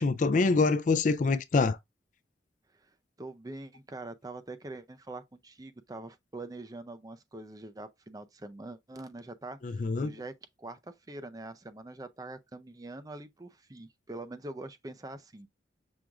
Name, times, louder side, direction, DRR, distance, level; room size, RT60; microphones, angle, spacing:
voice 1, 0.0-1.8 9.6-10.1, left 3 dB, 45° left, 0.4 m, -25 dB
voice 2, 3.2-10.3 10.6-15.5, right 2 dB, 20° right, 0.5 m, -44 dB
6.2 x 2.5 x 3.4 m
head